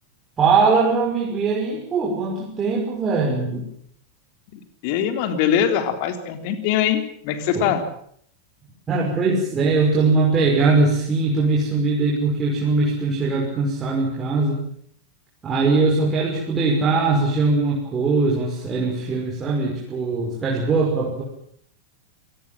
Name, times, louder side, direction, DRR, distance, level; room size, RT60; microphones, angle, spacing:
voice 1, 0.4-3.6 7.5-7.7 8.9-14.6 15.4-21.2, right 3 dB, 20° right, -3 dB, 5.8 m, -21 dB
voice 2, 4.8-7.8, left 9 dB, 45° left, 8 dB, 3.7 m, -22 dB
27.5 x 19.5 x 7.7 m, 0.65 s
figure-of-eight pair, 90°, 0 cm